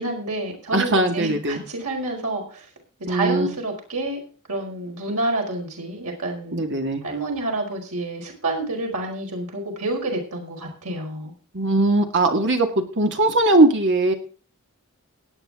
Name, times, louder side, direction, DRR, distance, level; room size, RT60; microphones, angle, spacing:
voice 1, 0.0-2.6 3.1-4.2 4.5-6.6 7.0-11.3, right 2 dB, 85° right, 0 dB, 5.1 m, -28 dB
voice 2, 0.7-1.6 3.1-3.5 6.5-7.0 11.5-14.1, right 2 dB, 55° right, 5 dB, 2.1 m, -20 dB
18.5 x 9.0 x 3.7 m, 0.39 s
head